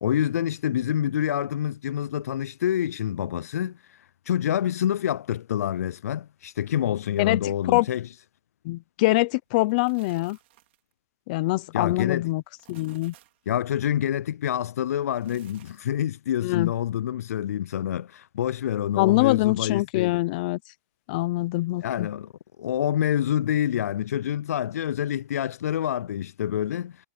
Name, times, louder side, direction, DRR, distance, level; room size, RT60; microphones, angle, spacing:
voice 1, 0.0-3.8 4.3-8.1 11.7-12.2 13.5-20.2 21.8-22.3 22.6-27.0, left 10 dB, 65° left, 0.4 m, -27 dB
voice 2, 7.2-7.9 8.6-10.4 11.3-12.4 12.7-13.1 16.4-16.7 19.0-20.6 21.1-22.1, left 21 dB, 30° left, 0.8 m, -24 dB
sound 1, 9.5-10.9 12.4-13.5 15.0-16.0, right 16 dB, 40° right, 3.7 m, -57 dB
hypercardioid pair, 165°, 9 cm